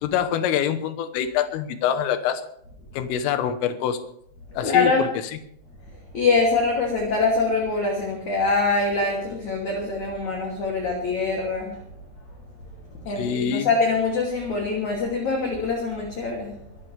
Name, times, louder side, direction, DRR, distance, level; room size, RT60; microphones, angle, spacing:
voice 1, 0.0-2.4 2.9-4.0 4.6-5.1 13.2-13.7, left 9 dB, 85° left, 8 dB, 3.8 m, -25 dB
voice 2, 4.6-5.1 6.1-11.8 13.0-16.5, left 3 dB, 40° left, -2 dB, 3.7 m, -24 dB
24.0 x 13.5 x 3.5 m, 0.69 s
omnidirectional pair, 5.7 m